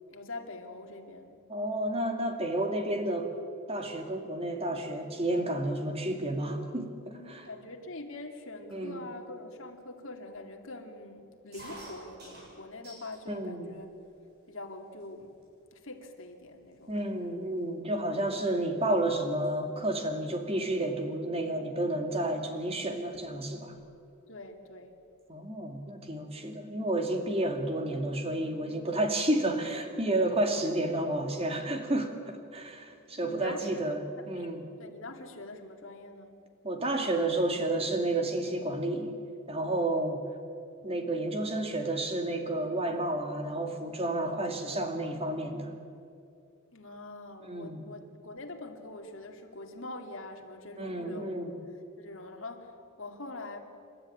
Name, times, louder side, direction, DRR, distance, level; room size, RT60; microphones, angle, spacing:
voice 1, 0.1-1.5 7.1-13.9 14.5-15.3 15.7-17.4 24.3-24.9 33.2-34.5 34.8-36.4 46.7-51.4 52.0-53.6, left 2 dB, 65° left, 3 dB, 2.5 m, -44 dB
voice 2, 1.5-3.3 3.7-7.5 8.7-9.0 13.3-13.7 16.9-23.8 25.3-34.6 36.6-39.2 39.5-40.2 40.8-45.7 47.4-47.8 50.8-51.5, right 1 dB, 25° right, 5 dB, 2.2 m, -31 dB
sound 1, 11.5-13.3 13.7-14.3 15.0-15.1 15.4-15.7 16.4-16.5 16.7-19.0 19.2-19.6 20.9-21.1 22.2-22.3 22.6-22.7 22.9-23.8, right 2 dB, 50° right, 7.5 m, -51 dB
28.5 x 13.5 x 9.8 m, 2.4 s
head